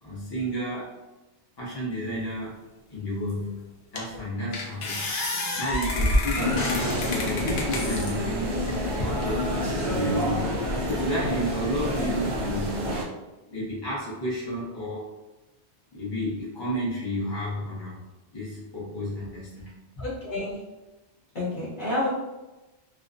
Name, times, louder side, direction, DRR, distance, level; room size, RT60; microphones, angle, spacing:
voice 1, 0.0-0.9 1.6-2.6 2.9-3.6 3.9-5.1 5.6-8.5 9.0-9.5 9.9-12.8 13.5-15.1 15.9-18.0 18.3-20.0, equal, 25° left, -7 dB, 0.6 m, -32 dB
sound 1, 3.3-3.4 4.0-4.2 4.5-8.1 8.7-9.3, left 1 dB, 65° left, 0.7 m, -28 dB
sound 2, 6.4-13.0, equal, 55° right, 0.6 m, -28 dB
voice 2, 20.0-20.6 21.3-22.1, left 2 dB, 45° left, -8 dB, 1.0 m, -29 dB
2.4 x 2.1 x 2.5 m, 1.1 s
omnidirectional pair, 1.2 m